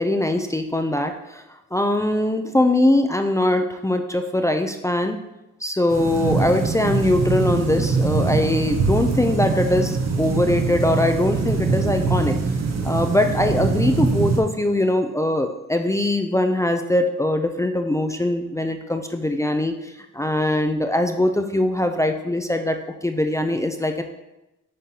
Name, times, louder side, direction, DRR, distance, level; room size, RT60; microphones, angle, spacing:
voice 1, 0.0-1.4 1.7-5.2 5.6-12.4 12.8-24.0, left 1 dB, 10° left, 6 dB, 0.4 m, -22 dB
sound 1, 5.9-14.4, right 4 dB, 65° right, 1.0 m, -23 dB
10.0 x 3.7 x 2.8 m, 0.95 s
cardioid pair, 90°, 29 cm